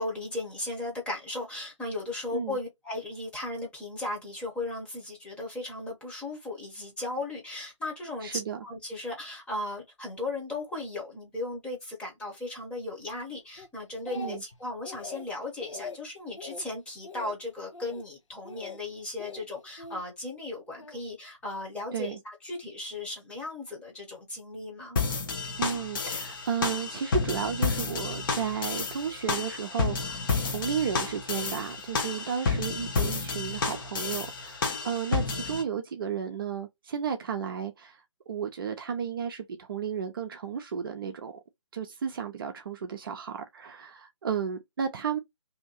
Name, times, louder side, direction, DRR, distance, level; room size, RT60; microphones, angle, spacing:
voice 1, 0.0-25.0, left 2 dB, 5° left, 1.0 m, -36 dB
voice 2, 8.2-8.6 14.1-14.4 21.9-22.2 25.6-41.4 41.7-45.2, right 7 dB, 45° right, 0.6 m, -33 dB
Speech, 13.6-14.6 14.8-15.3 15.6-16.0 16.4-16.6 17.0-17.4 17.7-18.0 18.4-18.8 19.2-20.0 20.8-21.0, left 4 dB, 75° left, 0.9 m, -42 dB
sound 1, 25.0-35.6, left 4 dB, 45° left, 0.9 m, -31 dB
2.8 x 2.5 x 3.9 m
figure-of-eight pair, 150°, 16 cm